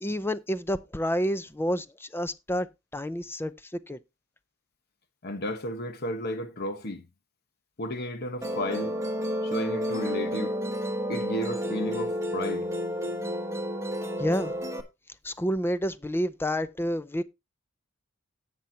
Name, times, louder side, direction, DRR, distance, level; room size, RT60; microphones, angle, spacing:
voice 1, 0.0-4.0 14.2-14.5 15.2-17.2, equal, 10° left, 0.5 m, -29 dB
voice 2, 5.2-7.0 7.8-8.9 9.4-10.6 11.1-12.7, left 1 dB, 50° left, 1.2 m, -33 dB
Musical instrument, 8.4-14.8, equal, 15° right, 1.2 m, -31 dB
17.0 x 5.8 x 2.8 m
head